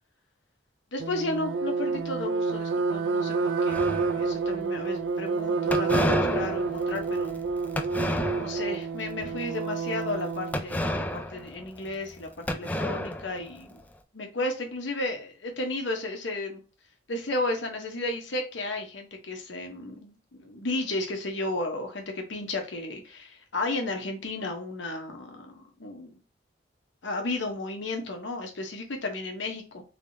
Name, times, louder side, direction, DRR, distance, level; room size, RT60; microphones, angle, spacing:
voice 1, 0.9-7.4 8.3-13.8 14.1-16.6 17.1-26.2 27.0-29.8, left 2 dB, 75° left, 3 dB, 1.0 m, -33 dB
sound 1, 1.0-10.6, right 4 dB, 80° right, 0.4 m, -29 dB
sound 2, 3.7-4.5 5.7-8.8 9.2-9.5 10.5-12.2 12.5-13.8, left 1 dB, 10° left, 0.3 m, -31 dB
3.4 x 3.3 x 2.7 m, 0.35 s
head